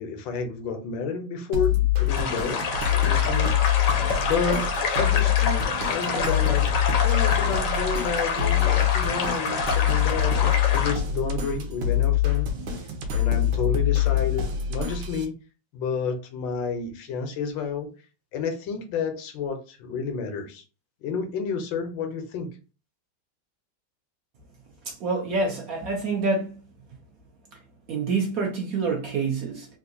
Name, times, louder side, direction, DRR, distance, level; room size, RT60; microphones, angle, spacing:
voice 1, 0.0-2.6 2.9-3.5 4.2-6.7 7.0-12.5 13.1-15.3 15.7-17.9 18.3-20.6 21.0-22.5, left 5 dB, 85° left, 1.4 m, -30 dB
sound 1, 1.5-15.2, left 10 dB, 80° right, 1.4 m, -24 dB
sound 2, 2.1-10.9, left 4 dB, 65° left, 0.9 m, -27 dB
voice 2, 24.9-26.5 27.9-29.7, right 4 dB, 65° right, 0.9 m, -27 dB
3.6 x 2.4 x 2.6 m
omnidirectional pair, 2.0 m